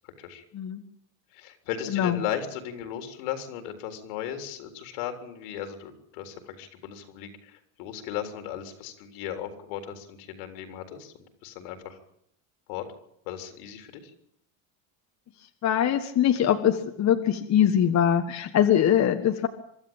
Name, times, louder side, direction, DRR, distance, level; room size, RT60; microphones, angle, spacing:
voice 1, 1.3-11.1 11.4-12.0 12.7-12.8 13.3-14.1, left 10 dB, 80° left, 6 dB, 3.8 m, -36 dB
voice 2, 1.9-2.2 15.6-19.5, left 9 dB, 40° left, 5 dB, 1.5 m, -22 dB
24.0 x 12.5 x 8.9 m, 0.72 s
supercardioid pair, 115°, 43 cm